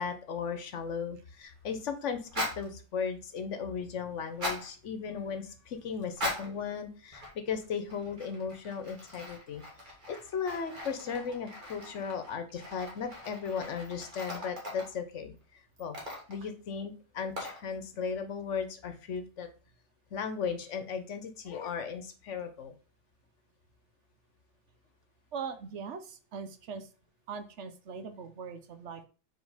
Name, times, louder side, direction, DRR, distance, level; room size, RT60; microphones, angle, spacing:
voice 1, 0.0-9.6 10.1-16.0 16.3-19.5 20.1-22.7, left 6 dB, 80° left, 8 dB, 1.2 m, -36 dB
sound 1, 2.3-2.7 4.3-4.7 6.1-6.6 7.1-7.6 7.9-15.0 15.8-16.5 17.4-17.6, equal, 40° right, 2.0 m, -40 dB
voice 2, 25.3-26.9 27.3-29.1, right 5 dB, 75° right, 9 dB, 1.0 m, -41 dB
5.2 x 4.3 x 4.9 m, 0.37 s
omnidirectional pair, 1.2 m